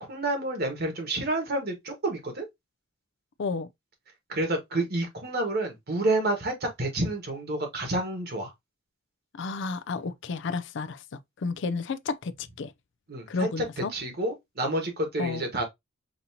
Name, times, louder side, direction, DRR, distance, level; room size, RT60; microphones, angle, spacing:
voice 1, 0.1-2.5 4.3-8.5 13.1-15.6, right 2 dB, 50° right, 1.4 m, -29 dB
voice 2, 9.4-11.0 11.4-12.7 13.3-13.9 15.2-15.5, left 4 dB, 60° left, 0.4 m, -31 dB
5.2 x 2.8 x 2.7 m
head